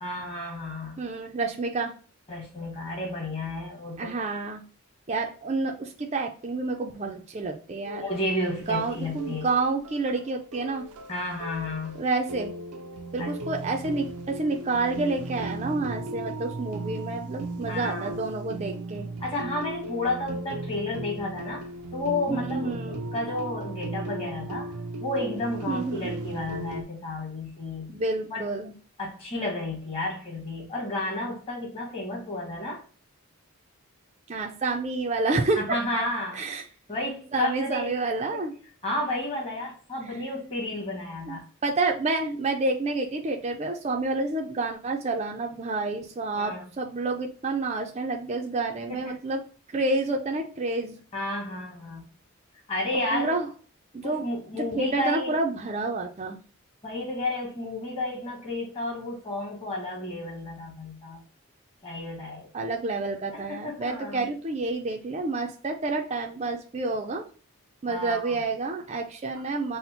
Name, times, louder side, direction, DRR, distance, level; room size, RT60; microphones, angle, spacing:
voice 1, 0.0-1.0 2.3-4.1 7.9-9.5 11.1-12.0 13.2-13.3 17.7-18.2 19.2-24.7 25.0-27.9 28.3-28.5 29.0-32.8 35.6-36.4 36.9-37.9 38.3-38.4 38.8-41.4 46.4-46.6 48.9-49.2 51.1-52.1 52.7-53.4 54.0-55.3 56.8-61.2 61.8-62.5 63.3-64.3 67.9-68.4, left 2 dB, 25° left, -2 dB, 1.4 m, -32 dB
voice 2, 1.0-1.9 4.0-4.6 5.1-8.0 8.7-10.9 11.9-12.5 13.1-19.1 22.3-23.0 25.7-26.1 27.9-28.7 34.3-35.8 36.3-36.6 37.3-38.5 41.3-49.4 49.7-51.0 53.1-53.5 53.9-54.2 54.5-56.4 62.5-67.2 67.8-69.8, right 3 dB, 30° right, 2 dB, 0.4 m, -29 dB
sound 1, 7.9-26.8, right 2 dB, 90° right, 0.4 m, -37 dB
4.2 x 2.1 x 4.2 m, 0.40 s
head